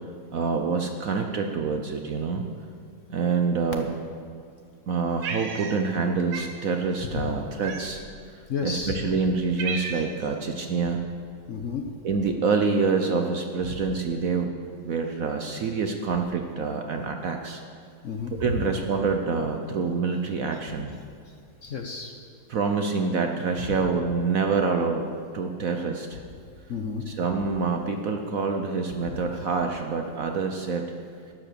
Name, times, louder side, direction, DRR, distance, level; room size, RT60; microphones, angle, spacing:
voice 1, 0.3-2.5 3.1-3.9 4.9-8.0 8.3-11.0 12.0-14.5 14.8-17.6 18.3-20.9 22.5-25.1 25.3-26.2 27.1-30.9, right 4 dB, 60° right, 4 dB, 1.0 m, -26 dB
Cat, 5.2-6.0 6.3-6.6 7.6-8.1 8.8-8.9 9.3-10.3, right 5 dB, 90° right, 1.8 m, -34 dB
voice 2, 8.5-8.9 11.5-11.8 18.0-18.7 21.6-22.1 23.6-23.7 26.7-27.0 29.1-29.2, left 6 dB, 55° left, 3 dB, 1.0 m, -31 dB
12.0 x 10.5 x 6.8 m, 2.2 s
omnidirectional pair, 2.1 m